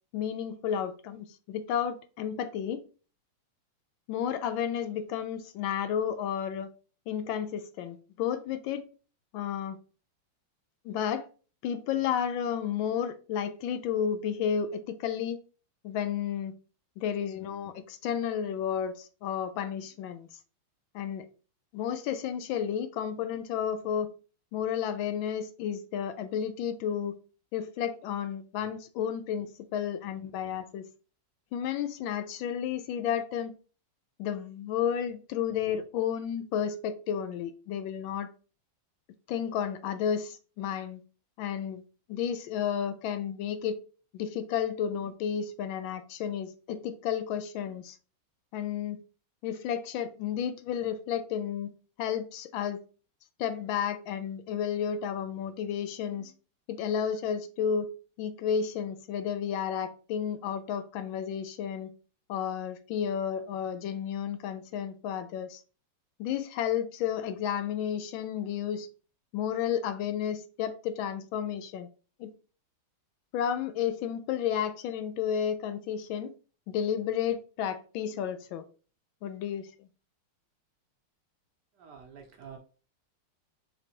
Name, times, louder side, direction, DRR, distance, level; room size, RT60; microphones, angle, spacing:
voice 1, 0.1-2.8 4.1-6.7 7.1-8.8 9.3-9.8 10.8-11.3 11.6-15.4 15.8-16.5 17.0-20.3 20.9-21.3 21.7-24.1 24.5-27.2 27.5-30.9 31.5-33.5 34.2-38.3 39.3-41.0 41.4-41.8 42.1-43.8 44.1-48.0 48.5-49.0 49.4-51.7 52.0-52.8 53.4-56.3 56.7-57.9 58.2-61.9 62.3-65.6 66.2-68.9 69.3-71.9 72.2-72.3 73.3-76.3 76.7-78.6 79.2-79.7, left 8 dB, 75° left, 1.2 m, -32 dB
voice 2, 81.8-82.6, right 7 dB, 70° right, 1.0 m, -47 dB
5.0 x 3.3 x 2.8 m
omnidirectional pair, 2.4 m